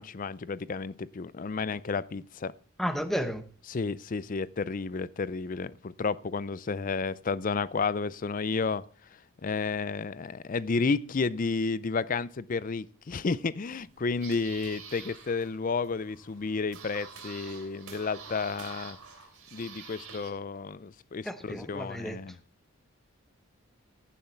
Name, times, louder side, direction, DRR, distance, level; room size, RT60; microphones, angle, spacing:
voice 1, 0.0-2.5 3.7-8.8 9.4-19.0 19.5-22.4, left 4 dB, 40° left, 0.4 m, -31 dB
voice 2, 2.8-3.4 21.2-22.2, equal, ahead, 0.9 m, -32 dB
sound 1, 13.8-20.3, right 6 dB, 85° right, 3.1 m, -47 dB
15.5 x 7.2 x 4.5 m
head